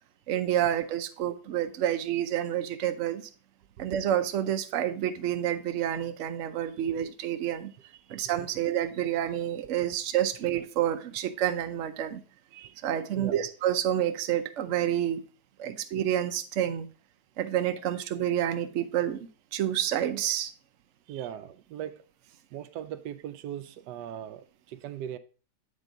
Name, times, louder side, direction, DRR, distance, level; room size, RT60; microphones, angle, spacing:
voice 1, 0.3-3.2 3.8-7.7 8.1-12.2 12.5-15.2 15.6-16.9 17.4-20.5, right 11 dB, 60° right, 0.9 m, -29 dB
voice 2, 13.1-13.5 15.6-15.8 21.1-22.0 22.5-25.2, right 10 dB, 80° right, 1.1 m, -39 dB
8.3 x 5.3 x 3.7 m
omnidirectional pair, 1.8 m